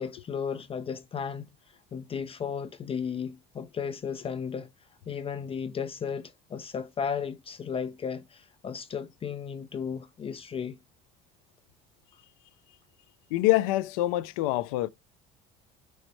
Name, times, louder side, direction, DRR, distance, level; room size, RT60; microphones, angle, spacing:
voice 1, 0.0-1.5 1.9-4.7 5.1-10.8, left 6 dB, 30° left, 0.5 m, -34 dB
voice 2, 13.3-14.9, left 16 dB, 85° left, 0.4 m, -25 dB
5.1 x 3.2 x 3.1 m
supercardioid pair, 85°, 18 cm